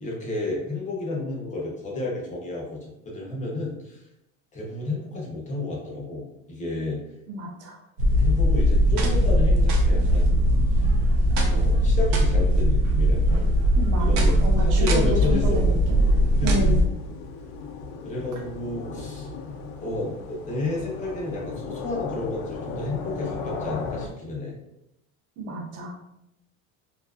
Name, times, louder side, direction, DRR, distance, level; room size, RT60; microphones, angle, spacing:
voice 1, 0.0-2.8 3.1-4.0 4.5-7.0 8.2-10.4 10.7-10.9 11.3-13.4 14.0-15.9 16.4-16.8 18.0-19.3 19.8-24.6, left 2 dB, 20° left, -3 dB, 0.5 m, -31 dB
voice 2, 7.3-7.8 13.8-15.0 15.3-15.7 16.4-16.8 25.4-25.9, equal, 40° right, 0 dB, 0.5 m, -31 dB
sound 1, 8.0-16.9, equal, 80° right, 0.6 m, -20 dB
sound 2, 15.9-24.1, left 4 dB, 70° left, 0.5 m, -36 dB
2.6 x 2.3 x 2.3 m, 0.84 s
cardioid pair, 150°, 38 cm